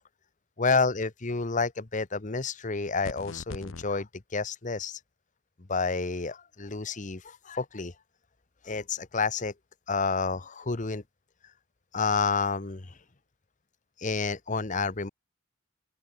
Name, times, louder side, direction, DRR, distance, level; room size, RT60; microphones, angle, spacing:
voice 1, 0.6-5.0 5.7-7.9 8.6-9.5 9.9-11.0 11.9-12.9 14.0-15.1, left 4 dB, 40° left, 1.0 m, -29 dB
sound 1, 3.0-3.9, left 3 dB, 75° left, 0.8 m, -40 dB
open air
head